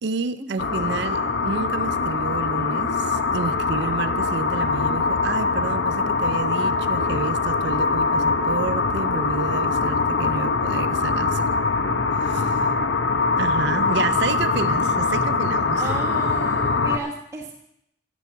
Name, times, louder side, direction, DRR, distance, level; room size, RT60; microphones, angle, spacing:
voice 1, 0.0-11.6 12.1-12.7 13.4-16.0, right 4 dB, 65° right, 13 dB, 0.5 m, -30 dB
sound 1, 0.6-17.0, left 4 dB, 80° left, 0.8 m, -23 dB
voice 2, 0.8-1.3 13.6-14.6 15.7-17.6, right 2 dB, 15° right, -4 dB, 1.3 m, -35 dB
14.5 x 6.9 x 7.0 m, 0.79 s
head